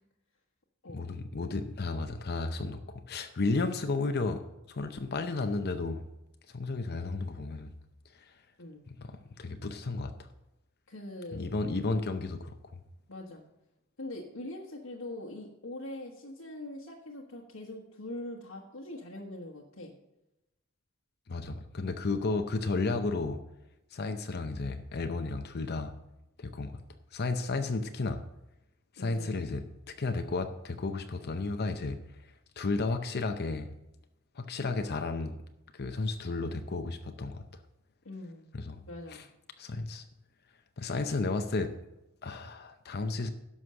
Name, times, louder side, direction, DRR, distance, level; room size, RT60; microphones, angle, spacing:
voice 1, 0.9-2.8 3.1-6.0 6.5-7.7 8.1-8.4 8.9-10.3 11.3-12.6 21.3-23.4 23.9-25.9 26.4-26.8 27.1-28.2 28.9-32.0 32.6-33.7 34.4-35.4 35.7-37.4 38.5-38.8 39.1-39.3 39.6-40.0 40.8-41.7 42.2-43.3, left 3 dB, 50° left, 7 dB, 0.7 m, -33 dB
voice 2, 10.9-11.4 13.1-13.4 14.0-19.9 29.0-29.3 38.0-38.5 38.8-39.2, left 1 dB, 80° left, -2 dB, 1.4 m, -42 dB
11.0 x 6.3 x 6.4 m, 0.91 s
head